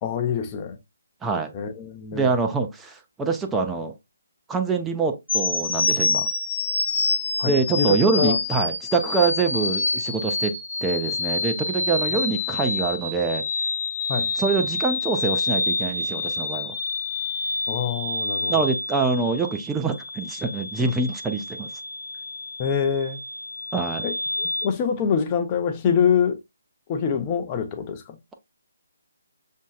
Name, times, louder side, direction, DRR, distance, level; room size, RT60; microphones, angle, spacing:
voice 1, 0.0-0.8 1.5-2.3 7.4-8.4 12.1-12.2 14.1-14.3 17.7-18.5 22.6-23.2 24.0-24.1 24.6-26.4 26.9-28.2, left 7 dB, 25° left, 0.7 m, -25 dB
voice 2, 1.2-1.5 2.1-3.9 4.5-6.3 7.4-10.5 10.8-13.4 14.4-16.8 18.5-21.7 23.7-24.1, right 4 dB, 10° right, 0.6 m, -25 dB
sound 1, 5.3-24.7, left 3 dB, 65° left, 1.1 m, -28 dB
7.1 x 2.7 x 2.3 m
figure-of-eight pair, 145°, 0 cm